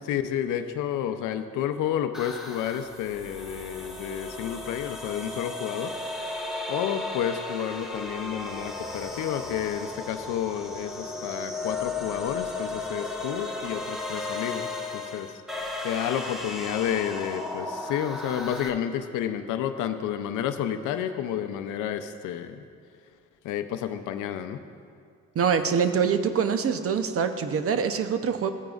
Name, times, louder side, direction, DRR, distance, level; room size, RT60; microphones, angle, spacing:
voice 1, 0.0-5.9 6.7-15.3 15.8-22.6 23.4-24.6, left 10 dB, 85° left, 8 dB, 0.5 m, -30 dB
sound 1, 2.1-18.7, left 2 dB, ahead, 1.2 m, -35 dB
voice 2, 25.4-28.5, right 6 dB, 50° right, 9 dB, 0.7 m, -24 dB
15.5 x 9.0 x 2.4 m, 2.3 s
cardioid pair, 90°, 30 cm